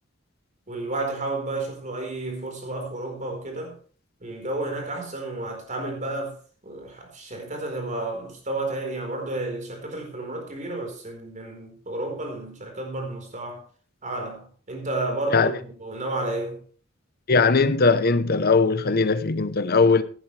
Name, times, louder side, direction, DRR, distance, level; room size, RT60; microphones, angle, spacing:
voice 1, 0.7-3.8 4.2-6.4 6.6-13.6 14.0-16.6, right 2 dB, 40° right, 4.5 m, -31 dB
voice 2, 17.3-20.0, left 4 dB, 50° left, 0.9 m, -19 dB
16.0 x 11.0 x 3.3 m
head